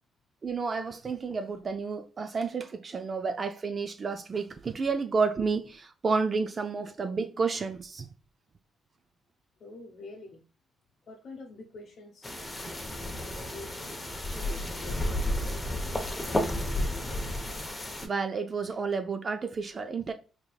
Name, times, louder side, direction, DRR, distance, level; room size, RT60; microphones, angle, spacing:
voice 1, 0.4-8.1 18.0-20.1, right 4 dB, 40° right, 0.3 m, -31 dB
voice 2, 9.6-10.4 11.1-12.3 13.2-17.0, left 3 dB, 55° left, 0.7 m, -47 dB
sound 1, 12.2-18.1, left 1 dB, 15° left, 0.7 m, -32 dB
3.9 x 3.4 x 2.3 m
cardioid pair, 90°, 0 cm